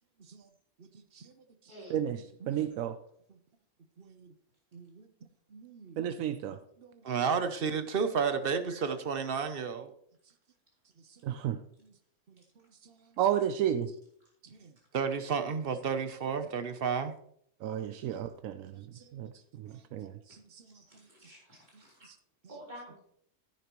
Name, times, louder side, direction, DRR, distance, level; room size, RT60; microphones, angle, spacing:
voice 1, 0.8-1.3 2.4-2.5 3.3-3.4 4.0-4.3 4.7-5.1 5.5-6.0 6.8-9.9 12.3-12.4 12.8-13.0 14.4-17.1 18.9-19.3 19.6-19.8 20.3-20.8 22.0-22.2, right 6 dB, 50° right, 9 dB, 0.9 m, -33 dB
voice 2, 1.9-2.2 2.5-3.0 6.0-6.6 11.2-11.6 13.2-13.9 17.6-20.1, right 10 dB, 90° right, 9 dB, 1.0 m, -32 dB
voice 3, 20.6-22.1 22.5-23.0, right 1 dB, 35° right, -5 dB, 4.0 m, -50 dB
10.0 x 10.0 x 3.0 m, 0.67 s
omnidirectional pair, 1.4 m